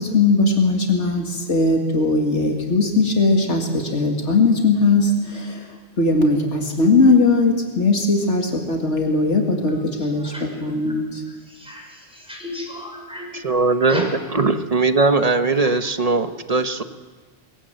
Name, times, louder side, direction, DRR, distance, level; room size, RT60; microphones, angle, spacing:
voice 1, 0.0-11.2, left 3 dB, 75° left, 2.3 m, -19 dB
voice 2, 10.0-10.4 11.3-13.4 13.7-14.2 14.9-15.0 15.4-15.7 16.2-16.9, left 1 dB, 5° right, 5.8 m, -36 dB
voice 3, 13.4-14.0 14.4-16.8, right 3 dB, 35° right, 1.0 m, -19 dB
22.0 x 17.0 x 7.8 m
omnidirectional pair, 1.2 m